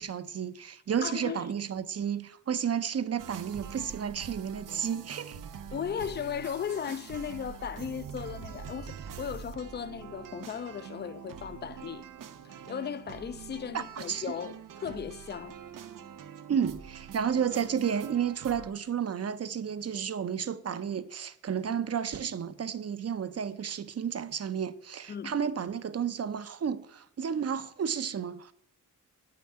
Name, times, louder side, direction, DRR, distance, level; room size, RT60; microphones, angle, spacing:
voice 1, 0.0-5.4 13.7-14.3 16.5-28.5, right 8 dB, 50° right, 0.6 m, -32 dB
voice 2, 1.0-1.4 5.7-12.0 12.4-15.6 25.1-25.3, left 8 dB, 35° left, 0.4 m, -36 dB
sound 1, 3.2-18.7, right 8 dB, 85° right, 0.8 m, -44 dB
9.5 x 5.9 x 8.5 m
wide cardioid pair, 160°, 31 cm